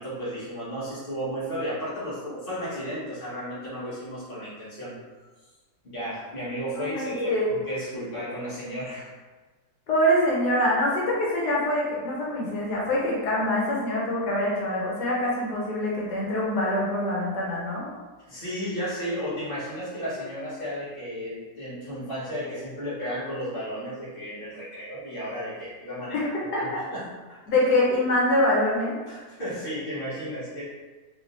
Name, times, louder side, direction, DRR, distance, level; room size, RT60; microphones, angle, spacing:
voice 1, 0.0-4.9 5.8-9.1 18.3-26.3 26.6-27.4 29.1-30.6, equal, 35° left, -10 dB, 1.5 m, -33 dB
voice 2, 6.7-7.5 9.9-17.8 26.1-26.6 27.5-29.0, left 1 dB, 85° left, -4 dB, 1.4 m, -25 dB
3.5 x 3.3 x 2.6 m, 1.3 s
omnidirectional pair, 1.7 m